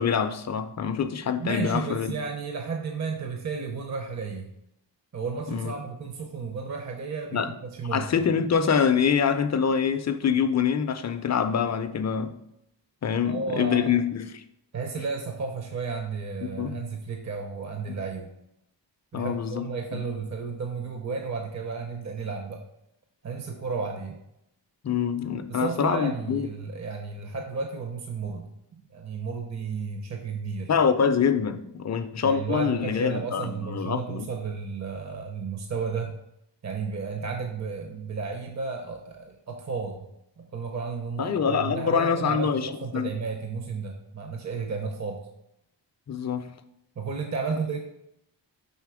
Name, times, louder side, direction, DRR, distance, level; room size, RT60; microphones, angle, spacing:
voice 1, 0.0-2.1 5.5-5.7 7.3-7.5 7.9-12.3 13.0-14.4 16.6-16.8 17.9-18.0 19.1-20.0 24.8-26.5 30.7-34.3 41.2-43.1 46.1-46.5, left 7 dB, 40° left, 8 dB, 0.4 m, -25 dB
voice 2, 1.4-4.5 5.1-8.2 13.3-13.9 14.7-18.3 19.1-22.6 23.2-24.2 25.5-30.7 32.2-36.1 36.6-40.0 40.4-45.3 47.0-47.8, right 5 dB, 40° right, 3 dB, 0.6 m, -33 dB
5.7 x 3.7 x 4.7 m, 0.80 s
wide cardioid pair, 170°, 44 cm